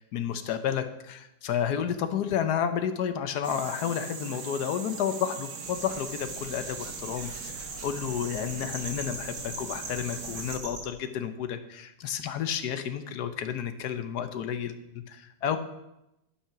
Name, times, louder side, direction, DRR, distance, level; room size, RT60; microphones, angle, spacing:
voice 1, 0.0-7.5 7.8-14.8 15.1-15.6, left 8 dB, 65° left, 9 dB, 1.3 m, -31 dB
sound 1, 3.4-10.6, right 5 dB, 55° right, 1.5 m, -40 dB
sound 2, 5.6-10.8, right 2 dB, 85° right, 2.9 m, -42 dB
11.5 x 5.8 x 5.9 m, 0.90 s
omnidirectional pair, 2.0 m